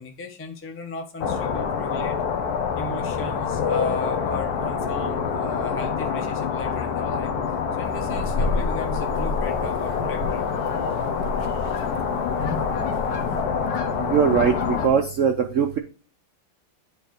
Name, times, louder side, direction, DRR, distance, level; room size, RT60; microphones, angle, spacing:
voice 1, 0.0-2.2 2.7-7.3 7.8-10.4, left 2 dB, 15° left, 3 dB, 0.5 m, -35 dB
sound 1, 1.2-14.9, left 6 dB, 60° left, 1.2 m, -26 dB
sound 2, 7.8-13.4, left 2 dB, 85° left, 1.7 m, -31 dB
voice 2, 14.0-15.8, right 7 dB, 75° right, 5 dB, 0.7 m, -21 dB
9.0 x 3.2 x 4.2 m, 0.36 s
omnidirectional pair, 2.0 m